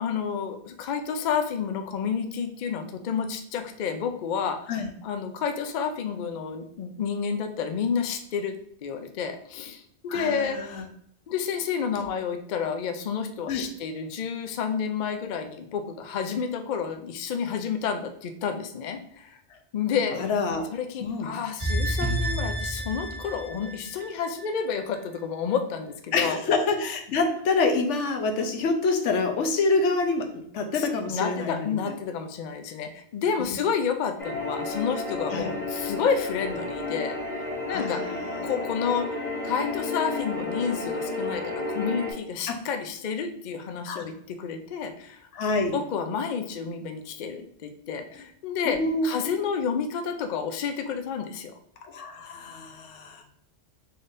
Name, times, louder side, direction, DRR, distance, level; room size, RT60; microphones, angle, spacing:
voice 1, 0.0-4.7 5.0-8.6 8.8-10.6 11.3-19.4 19.7-20.3 20.7-26.4 30.7-38.0 38.4-45.3 45.7-51.5, left 6 dB, 55° left, 7 dB, 0.5 m, -30 dB
voice 2, 10.1-10.8 13.5-13.6 20.2-20.7 21.0-21.3 26.1-32.0 33.4-33.6 35.3-35.5 37.7-38.2 42.5-42.6 43.9-44.1 45.3-45.8 48.6-49.3 51.8-53.2, left 3 dB, 90° left, 5 dB, 1.0 m, -27 dB
sound 1, 21.6-24.8 25.2-25.3, right 1 dB, 25° right, 1.3 m, -30 dB
sound 2, 34.2-42.1, left 2 dB, 40° left, 1.3 m, -32 dB
3.8 x 3.7 x 2.5 m, 0.69 s
omnidirectional pair, 1.2 m